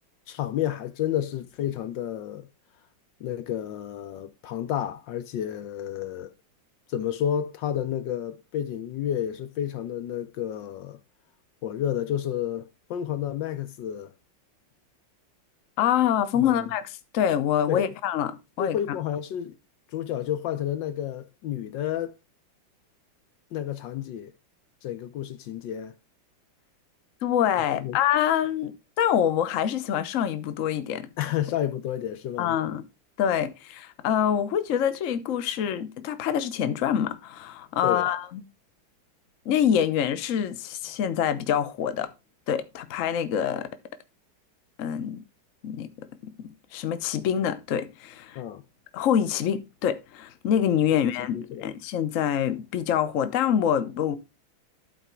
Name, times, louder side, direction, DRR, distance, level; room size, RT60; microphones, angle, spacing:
voice 1, 0.3-2.5 3.2-6.3 6.9-11.0 11.6-14.1 16.4-16.7 17.7-17.8 18.6-19.5 19.9-22.2 23.5-24.3 24.8-25.9 27.8-28.0 31.2-32.6 37.8-38.1 48.3-48.6 51.2-51.7, left 10 dB, 70° left, 1.3 m, -30 dB
voice 2, 15.8-18.8 27.2-31.1 32.4-32.8 33.2-38.4 39.4-42.1 42.5-43.7 44.8-45.2 45.6-45.9 46.2-48.4 48.9-54.2, left 9 dB, 55° left, 1.0 m, -26 dB
12.0 x 4.3 x 4.4 m
omnidirectional pair, 2.2 m